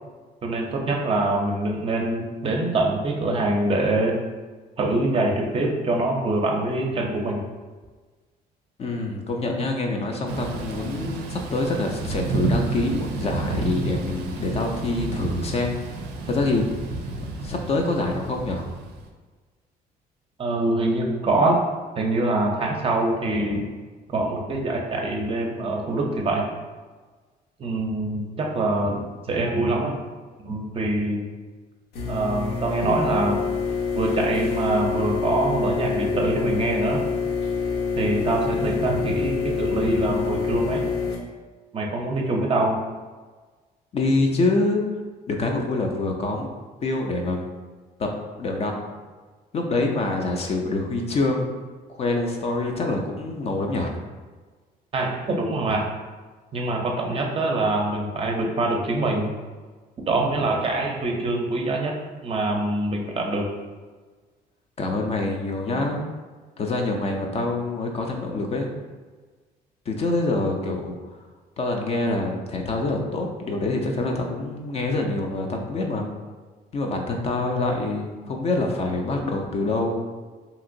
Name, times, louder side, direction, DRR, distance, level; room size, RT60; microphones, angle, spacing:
voice 1, 0.4-4.2 4.8-7.4 20.4-21.6 22.0-23.6 24.1-26.4 27.6-30.0 30.4-31.2 32.1-33.4 33.9-37.0 38.0-40.8 41.7-42.8 54.9-55.9 56.5-59.3 60.1-61.9 62.2-63.5, right 2 dB, 35° right, 0 dB, 0.5 m, -24 dB
voice 2, 8.8-15.8 16.2-16.6 17.4-18.7 43.9-44.8 45.3-46.5 46.8-47.5 48.0-48.1 48.4-48.7 49.5-51.5 51.9-53.9 64.8-66.1 66.6-68.7 69.9-70.9 71.6-76.1 76.7-80.0, left 2 dB, 40° left, 2 dB, 0.4 m, -25 dB
Thunder / Rain, 10.3-19.1, right 2 dB, 85° right, 0.4 m, -30 dB
sound 1, 31.9-41.1, left 5 dB, 75° left, 0.7 m, -26 dB
2.9 x 2.9 x 2.5 m, 1.4 s
cardioid pair, 110°, 17 cm